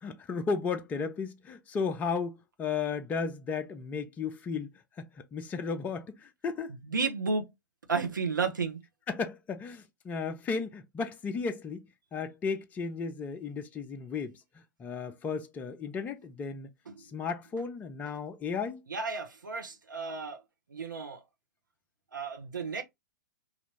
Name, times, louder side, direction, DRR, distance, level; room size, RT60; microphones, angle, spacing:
voice 1, 0.0-4.7 5.0-6.7 9.1-16.7 17.0-18.8, left 5 dB, 15° left, 0.4 m, -34 dB
voice 2, 6.8-7.5 7.9-8.8 16.9-17.1 18.9-20.4 20.7-21.2 22.1-22.8, right 4 dB, 75° right, 0.8 m, -32 dB
3.3 x 2.5 x 2.9 m
figure-of-eight pair, 105°, 10 cm